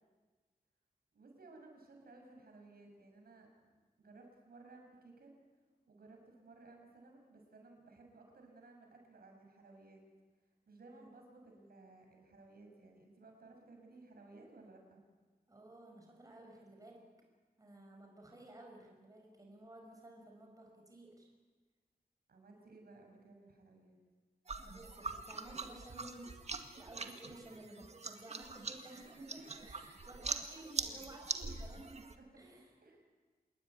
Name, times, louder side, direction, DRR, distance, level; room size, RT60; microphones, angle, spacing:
voice 1, 1.1-5.3 5.9-10.0 10.7-15.0 22.3-24.0 29.4-29.6 30.0-30.2 32.2-33.0, right 3 dB, 75° right, 2 dB, 6.9 m, -58 dB
voice 2, 15.5-17.0 17.6-21.3 24.6-26.4 26.8-32.7, right 1 dB, 20° right, 1 dB, 5.9 m, -54 dB
sound 1, 24.5-32.1, right 4 dB, 45° right, 2.0 m, -43 dB
27.5 x 21.5 x 9.6 m, 1.4 s
wide cardioid pair, 150°, 16 cm